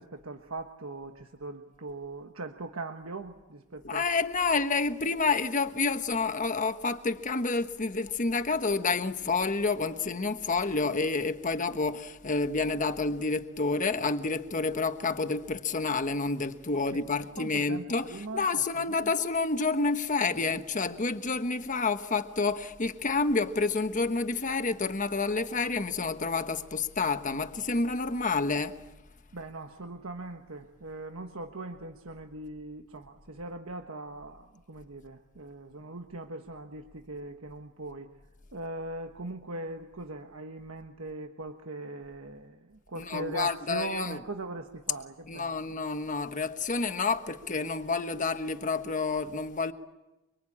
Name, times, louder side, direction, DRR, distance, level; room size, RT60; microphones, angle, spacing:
voice 1, 0.0-4.0 16.9-17.1 17.3-19.1 29.3-38.1 38.5-45.8, right 2 dB, 70° right, 1.4 m, -40 dB
voice 2, 3.8-28.8 42.9-44.2 45.2-49.7, left 4 dB, 40° left, 1.2 m, -29 dB
24.5 x 24.5 x 8.7 m
head